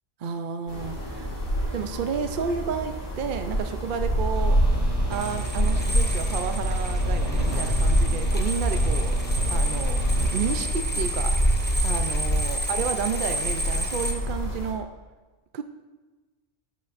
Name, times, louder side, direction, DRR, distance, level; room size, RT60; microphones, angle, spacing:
voice 1, 0.2-1.4 1.7-4.6 5.1-9.2 9.5-11.3 11.8-14.9 15.5-15.6, right 6 dB, 55° right, 8 dB, 0.6 m, -31 dB
sound 1, 0.7-14.7, equal, 45° left, 2.1 m, -26 dB
sound 2, 4.3-10.6, equal, 75° right, 2.3 m, -38 dB
sound 3, 5.1-14.1, equal, 10° left, 0.6 m, -33 dB
12.0 x 8.8 x 2.5 m, 1.3 s
omnidirectional pair, 1.2 m